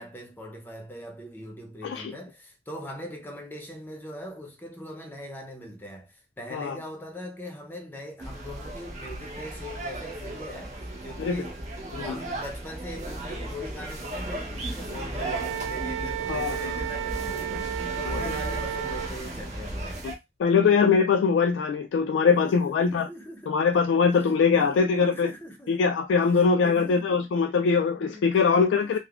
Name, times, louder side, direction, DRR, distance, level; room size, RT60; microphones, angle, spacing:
voice 1, 0.0-11.6 12.0-20.1 22.2-23.5 24.5-25.8 26.4-27.3 28.0-29.0, equal, 10° left, 0.6 m, -41 dB
sound 1, 8.2-20.1, right 1 dB, 40° right, 0.6 m, -35 dB
Wind instrument woodwind instrument, 15.2-19.1, right 11 dB, 75° right, 0.3 m, -33 dB
voice 2, 16.3-16.7 18.1-18.3 20.0-20.1 20.4-23.1 23.5-25.3 25.7-29.0, left 5 dB, 85° left, 0.3 m, -22 dB
3.3 x 2.0 x 2.3 m
head